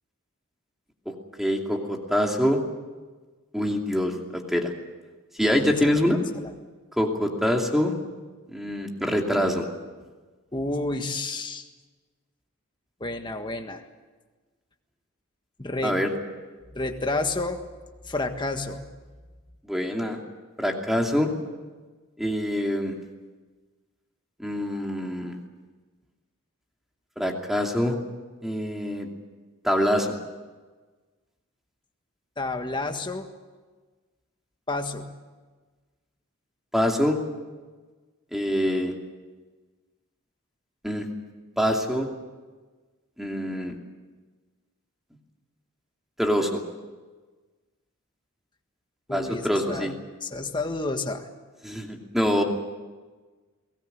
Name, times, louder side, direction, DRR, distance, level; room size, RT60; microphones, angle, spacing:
voice 1, 1.4-2.6 3.5-4.7 5.4-6.2 7.0-7.9 8.5-9.7 15.8-16.1 19.7-20.2 20.6-21.3 22.2-22.9 24.4-25.4 27.2-28.0 28.4-29.1 29.6-30.2 36.7-37.2 38.3-38.9 40.8-41.1 41.6-42.1 43.2-43.7 46.2-46.6 49.1-49.9 51.6-52.4, equal, ahead, 1 dB, 2.6 m, -25 dB
voice 2, 10.5-11.7 13.0-13.8 15.6-16.0 16.7-17.6 18.0-18.9 32.4-33.3 34.7-35.1 49.1-49.9 50.2-51.3, left 2 dB, 20° left, 5 dB, 1.6 m, -30 dB
22.5 x 18.5 x 9.2 m, 1.3 s
head